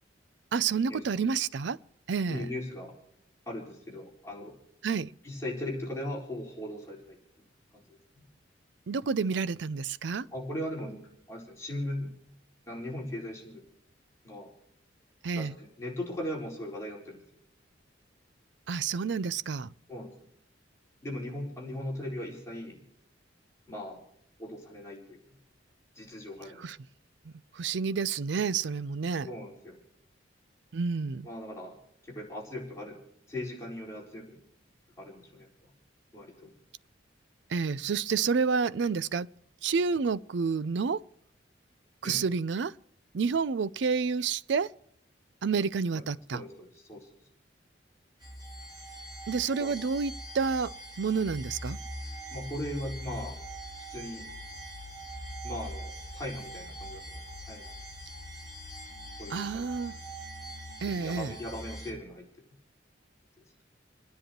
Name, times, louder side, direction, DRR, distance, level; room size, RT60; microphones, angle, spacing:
voice 1, 0.5-1.8 2.1-2.5 4.8-5.1 8.9-10.3 15.2-15.6 18.7-19.7 26.6-26.8 27.5-29.3 30.7-31.3 37.5-39.3 39.6-41.0 42.0-42.7 43.1-44.7 45.4-46.4 49.3-50.7 51.0-51.8 59.3-60.0 60.8-61.3, right 5 dB, 65° right, 0.4 m, -29 dB
voice 2, 2.3-2.9 3.5-4.5 5.2-7.2 7.7-8.2 9.3-9.4 10.3-11.0 11.3-12.1 12.7-13.6 14.2-14.5 15.3-17.2 19.9-20.1 21.0-22.8 23.7-24.0 24.4-25.2 25.9-26.7 29.2-29.8 31.2-31.8 32.1-33.0 33.3-34.4 35.0-35.5 36.1-36.5 42.0-42.3 45.9-46.0 46.3-47.1 49.6-49.7 52.3-53.4 53.9-54.3 55.4-57.2 57.5-57.7 59.2-59.6 60.9-62.3, left 1 dB, 15° left, 4.3 m, -38 dB
sound 1, 48.2-61.9, right 1 dB, 25° right, 4.5 m, -42 dB
29.5 x 10.5 x 3.0 m
head